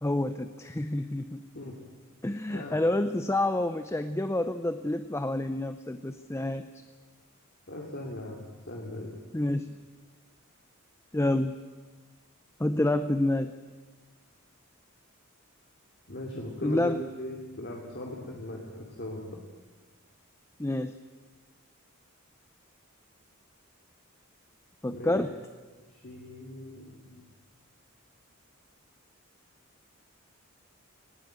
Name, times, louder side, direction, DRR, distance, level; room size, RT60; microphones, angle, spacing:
voice 1, 0.0-1.4 2.2-6.7 9.3-9.7 11.1-11.5 12.6-13.5 16.6-17.0 20.6-20.9 24.8-25.4, left 1 dB, 15° left, 10 dB, 0.6 m, -28 dB
voice 2, 7.7-9.1 16.1-19.4 24.9-25.2 26.0-27.2, left 1 dB, 50° left, -1 dB, 2.7 m, -39 dB
19.0 x 18.5 x 8.9 m, 1.4 s
head